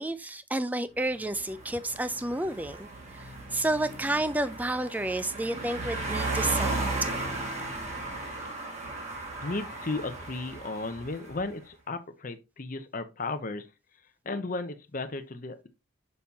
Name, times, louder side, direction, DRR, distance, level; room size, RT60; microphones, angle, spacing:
voice 1, 0.0-6.8, right 1 dB, 10° right, 0.3 m, -30 dB
sound 1, 1.2-11.5, right 2 dB, 30° right, 1.7 m, -35 dB
voice 2, 9.4-13.7 14.0-15.7, left 3 dB, 40° left, 0.7 m, -35 dB
6.6 x 5.4 x 2.8 m
head